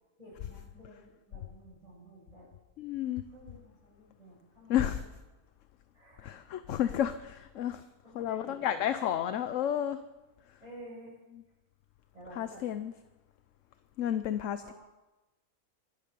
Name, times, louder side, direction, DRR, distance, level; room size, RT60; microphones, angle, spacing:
voice 1, 0.2-2.5 3.3-4.9 5.9-6.3 8.0-9.1 10.6-11.1 12.1-12.6 14.6-14.7, equal, 25° right, -8 dB, 8.1 m, -51 dB
voice 2, 2.8-3.2 4.7-5.0 6.2-7.8 8.1-10.0 12.4-12.9 14.0-14.7, left 10 dB, 65° left, 11 dB, 1.0 m, -31 dB
24.5 x 8.6 x 6.8 m, 1.1 s
omnidirectional pair, 1.6 m